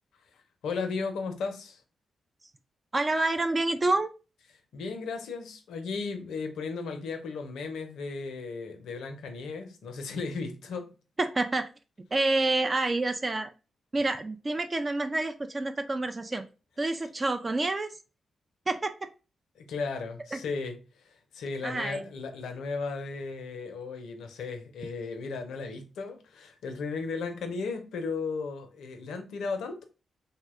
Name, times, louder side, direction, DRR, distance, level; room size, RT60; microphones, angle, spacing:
voice 1, 0.3-1.8 4.7-10.9 19.6-29.8, left 4 dB, 80° left, 0.5 m, -35 dB
voice 2, 2.9-4.1 11.2-11.7 12.1-13.5 13.9-16.4 16.8-17.9 18.7-18.9 20.3-20.4 21.6-22.1, right 2 dB, 35° right, 0.3 m, -28 dB
2.7 x 2.1 x 3.5 m
supercardioid pair, 45°, 0 cm